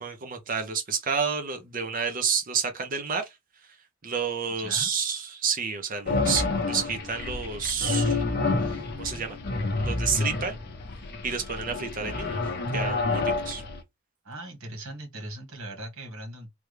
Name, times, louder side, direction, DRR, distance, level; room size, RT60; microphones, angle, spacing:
voice 1, 0.0-3.4 4.0-8.2 8.6-9.4 9.9-10.6 11.2-12.4 12.7-13.6, right 6 dB, 40° right, 0.6 m, -30 dB
voice 2, 4.6-4.9 14.2-16.5, right 1 dB, 85° right, 1.6 m, -39 dB
sound 1, 6.1-13.8, left 3 dB, 50° left, 0.7 m, -29 dB
3.5 x 2.2 x 3.2 m
head